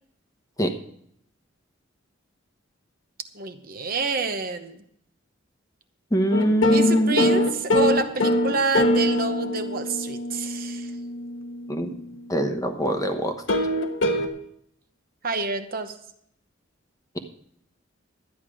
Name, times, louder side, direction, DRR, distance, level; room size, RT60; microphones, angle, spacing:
voice 1, 3.3-4.8 6.7-7.4 7.7-10.9 15.2-15.9, right 3 dB, 45° right, 7 dB, 0.9 m, -27 dB
voice 2, 6.1-7.3 11.7-11.9 12.3-13.3, equal, 15° left, 6 dB, 1.1 m, -22 dB
sound 1, 6.3-12.2 13.5-14.3, left 1 dB, 75° left, 1.2 m, -24 dB
12.5 x 9.3 x 4.9 m, 0.69 s
head